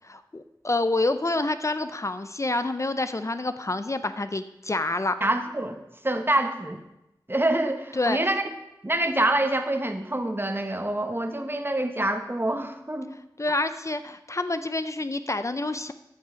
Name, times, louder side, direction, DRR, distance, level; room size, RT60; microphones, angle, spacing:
voice 1, 0.0-5.1 7.9-8.3 13.4-15.9, left 2 dB, 40° left, 11 dB, 0.5 m, -28 dB
voice 2, 5.2-5.8 6.0-6.8 7.3-8.5 8.8-13.1, right 1 dB, 30° right, 6 dB, 1.1 m, -26 dB
14.0 x 5.5 x 5.1 m, 0.90 s
wide cardioid pair, 45°, 8 cm